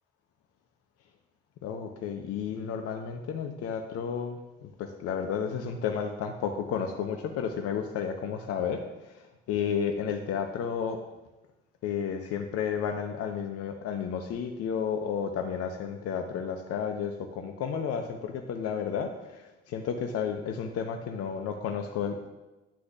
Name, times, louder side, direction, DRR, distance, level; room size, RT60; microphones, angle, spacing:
voice 1, 1.6-11.0 11.8-22.3, left 7 dB, 45° left, 5 dB, 0.8 m, -32 dB
10.0 x 9.6 x 2.4 m, 1.0 s
figure-of-eight pair, 55°, 34 cm